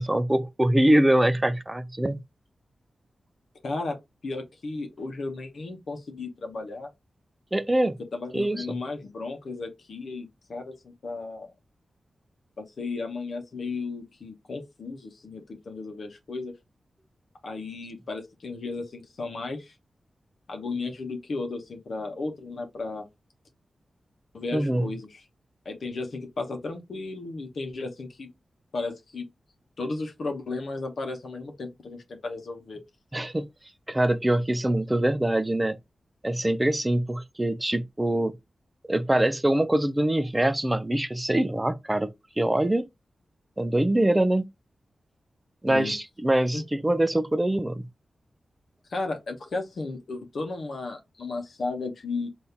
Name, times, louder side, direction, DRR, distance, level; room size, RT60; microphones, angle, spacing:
voice 1, 0.0-2.2 7.5-8.0 8.3-8.8 24.5-24.9 33.1-33.5 33.9-35.8 36.2-38.4 38.9-42.1 42.4-42.8 43.6-44.4 45.6-47.8, right 1 dB, 20° right, 0.5 m, -24 dB
voice 2, 3.6-4.0 4.2-6.9 8.1-11.5 12.6-16.5 17.4-19.7 20.5-23.1 24.3-25.2 25.6-28.3 28.7-29.3 29.8-32.8 45.7-45.9 46.5-46.6 48.9-52.3, left 3 dB, 70° left, 0.9 m, -34 dB
3.6 x 2.6 x 2.8 m
cardioid pair, 60°, 0 cm